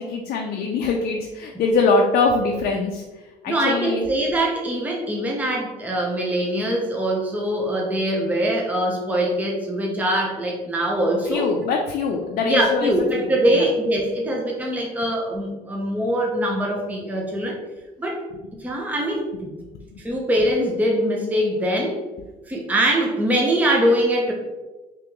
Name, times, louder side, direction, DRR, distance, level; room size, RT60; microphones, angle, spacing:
voice 1, 0.0-3.0 3.4-4.0 11.3-13.6, left 3 dB, 60° left, 1 dB, 0.4 m, -23 dB
voice 2, 3.5-11.5 12.4-17.6 18.0-18.2 18.6-19.5 20.0-22.0 22.5-24.3, right 1 dB, 10° right, -1 dB, 0.6 m, -22 dB
2.9 x 2.9 x 3.4 m, 1.2 s
cardioid pair, 110°, 17 cm